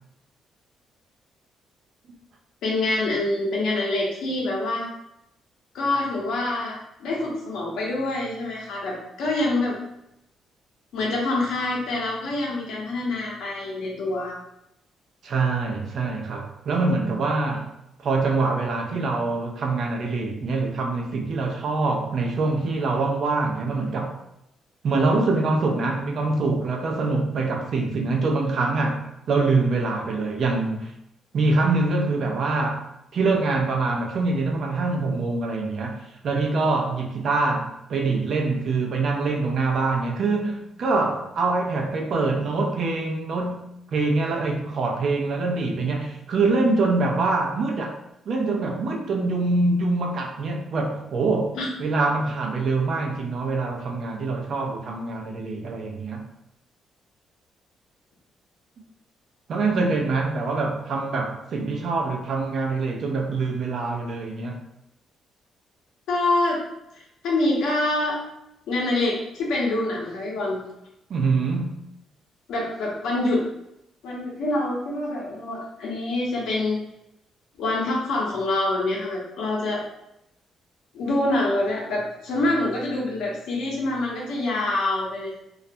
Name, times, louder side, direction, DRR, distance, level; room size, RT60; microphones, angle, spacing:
voice 1, 2.6-4.9 5.7-9.7 10.9-14.4 51.5-51.7 66.1-66.6 66.9-68.2 68.7-70.6 72.5-73.4 74.0-76.8 77.6-79.8 80.9-85.4, left 2 dB, 80° left, -3 dB, 0.7 m, -26 dB
voice 2, 15.2-17.7 18.0-24.2 24.8-30.9 31.3-32.8 33.1-48.0 48.3-56.3 59.5-64.6 71.1-71.8, right 3 dB, 60° right, 1 dB, 0.5 m, -24 dB
2.3 x 2.1 x 2.6 m, 0.84 s
cardioid pair, 90°, 0 cm